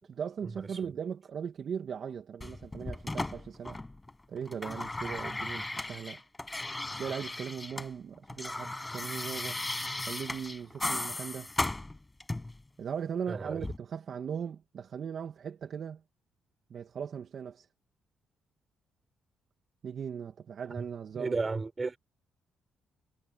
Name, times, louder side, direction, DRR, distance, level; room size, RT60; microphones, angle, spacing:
voice 1, 0.1-3.8 4.3-6.2 6.9-9.6 10.0-11.5 12.8-16.0 16.7-17.7 19.8-21.4, right 7 dB, 55° right, 2.5 m, -38 dB
sound 1, 2.4-4.1 4.4-7.9 8.2-12.6 13.6-13.8, left 2 dB, 15° left, 6.7 m, -36 dB
voice 2, 13.3-13.6 20.8-20.9 21.2-22.0, right 3 dB, 25° right, 7.1 m, -33 dB
cardioid pair, 90°, 0 cm